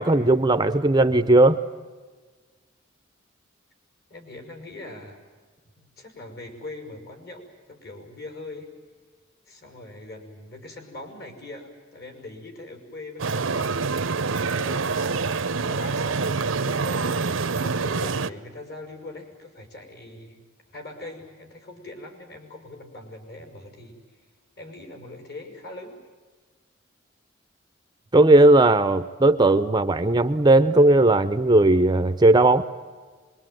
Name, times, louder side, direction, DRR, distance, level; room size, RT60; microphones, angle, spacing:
voice 1, 0.0-1.6 28.1-32.6, right 2 dB, 20° right, 11 dB, 0.7 m, -17 dB
voice 2, 4.1-5.2 5.8-8.7 9.5-13.8 14.5-15.2 15.6-20.4 20.7-24.3 24.6-26.0, left 2 dB, 55° left, 4 dB, 5.8 m, -41 dB
sound 1, 13.2-18.3, right 4 dB, 80° right, 0.9 m, -26 dB
25.0 x 23.0 x 9.2 m, 1.4 s
head